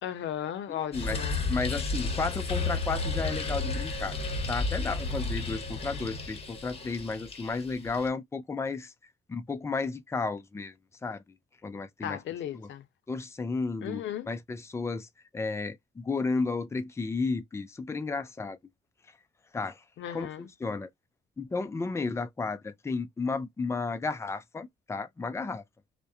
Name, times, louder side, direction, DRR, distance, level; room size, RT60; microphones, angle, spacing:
voice 1, 0.0-1.4 12.0-12.8 13.8-14.3 20.0-20.5, left 10 dB, 70° left, 0.6 m, -36 dB
voice 2, 0.7-1.2 1.5-4.2 4.5-8.9 9.3-10.7 11.0-11.2 11.6-12.2 12.5-12.7 13.1-15.1 15.3-18.6 19.5-19.8 20.1-20.9 21.4-25.6, left 4 dB, 15° left, 0.4 m, -33 dB
sound 1, 0.9-8.1, left 3 dB, 30° left, 0.9 m, -32 dB
2.3 x 2.2 x 2.6 m
cardioid pair, 90°, 20 cm